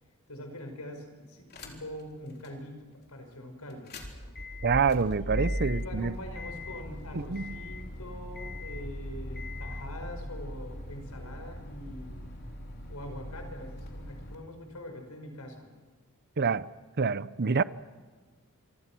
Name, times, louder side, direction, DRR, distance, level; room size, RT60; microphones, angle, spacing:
voice 1, 0.3-3.9 5.1-12.2 12.9-15.7, left 1 dB, 90° left, 5.5 m, -44 dB
sound 1, 1.5-2.0 2.4-2.5 3.7-14.4, left 1 dB, 45° left, 3.8 m, -39 dB
voice 2, 4.6-6.1 7.1-7.5 16.4-16.7 17.0-17.6, right 5 dB, 50° right, 0.7 m, -27 dB
27.0 x 24.5 x 6.2 m
head